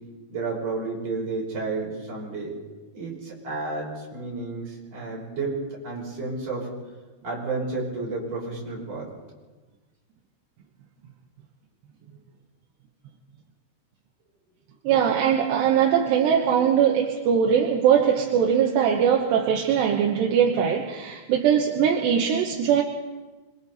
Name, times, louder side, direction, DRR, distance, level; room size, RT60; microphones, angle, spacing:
voice 1, 0.3-2.5 2.9-5.6 5.8-6.7 7.2-9.1, right 3 dB, 35° right, -4 dB, 6.9 m, -31 dB
voice 2, 14.9-22.8, right 8 dB, 80° right, 1 dB, 3.4 m, -21 dB
26.5 x 24.5 x 4.2 m, 1.2 s
omnidirectional pair, 4.9 m